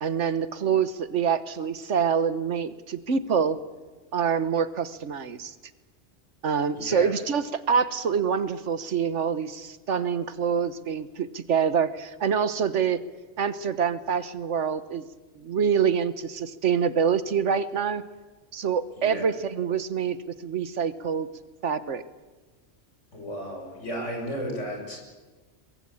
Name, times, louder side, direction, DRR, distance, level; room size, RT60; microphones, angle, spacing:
voice 1, 0.0-3.6 4.1-5.5 6.4-13.0 13.4-15.1 15.4-18.0 18.5-21.3 21.6-22.0, right 7 dB, 80° right, 14 dB, 1.5 m, -26 dB
voice 2, 6.7-7.1 19.0-19.3 23.1-25.0, equal, 90° left, 1 dB, 7.1 m, -34 dB
23.0 x 21.5 x 8.7 m, 1.3 s
omnidirectional pair, 1.2 m